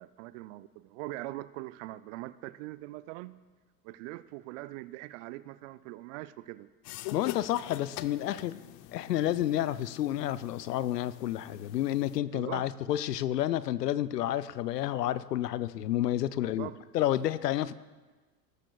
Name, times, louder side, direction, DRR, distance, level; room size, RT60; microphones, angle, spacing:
voice 1, 0.0-3.4 3.8-6.7 12.3-12.7 16.4-16.8, right 17 dB, 50° right, 0.6 m, -42 dB
sound 1, 6.8-12.2, left 15 dB, 40° left, 0.6 m, -45 dB
voice 2, 7.1-8.6 8.9-17.7, left 12 dB, 80° left, 0.6 m, -30 dB
18.5 x 13.0 x 2.3 m
hypercardioid pair, 85°, 47 cm